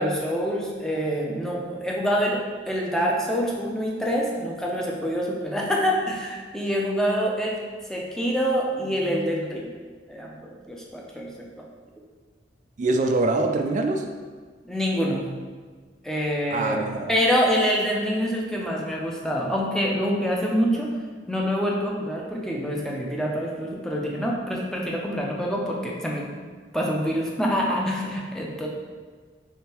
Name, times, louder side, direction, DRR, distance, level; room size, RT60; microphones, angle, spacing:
voice 1, 0.0-2.4 2.7-7.6 7.9-9.7 10.1-11.3 14.6-15.3 16.0-20.9 21.3-26.3 26.7-28.7, equal, 5° left, -3 dB, 0.6 m, -26 dB
voice 2, 12.8-14.1 16.5-17.1, right 2 dB, 45° right, 4 dB, 0.3 m, -24 dB
3.6 x 3.2 x 4.3 m, 1.5 s
head